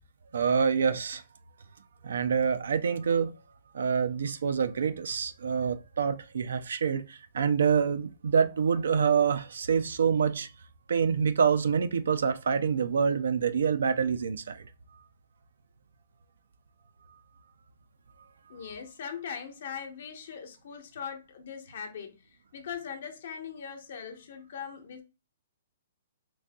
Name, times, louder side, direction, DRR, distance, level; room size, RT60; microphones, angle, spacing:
voice 1, 0.3-1.2 2.0-3.3 3.7-10.5 10.9-14.6, right 6 dB, 80° right, 0.4 m, -26 dB
voice 2, 18.5-22.2 22.5-25.0, left 7 dB, 60° left, 0.9 m, -40 dB
4.0 x 2.6 x 2.2 m
hypercardioid pair, 150°, 0 cm